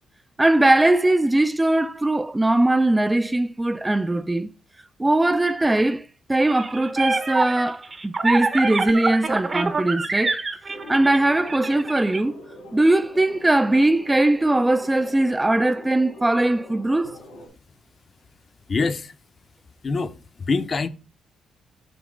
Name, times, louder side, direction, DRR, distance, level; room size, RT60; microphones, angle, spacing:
voice 1, 0.4-4.5 5.0-10.4 10.9-12.4 12.7-17.2, right 2 dB, 15° right, 0.3 m, -20 dB
sound 1, 6.4-12.2, right 3 dB, 35° right, 0.8 m, -25 dB
sound 2, 10.7-17.5, left 1 dB, 85° left, 2.6 m, -43 dB
voice 2, 18.7-19.1 19.8-20.9, left 4 dB, 40° left, 0.6 m, -25 dB
7.8 x 3.0 x 5.1 m
cardioid pair, 90°, 0 cm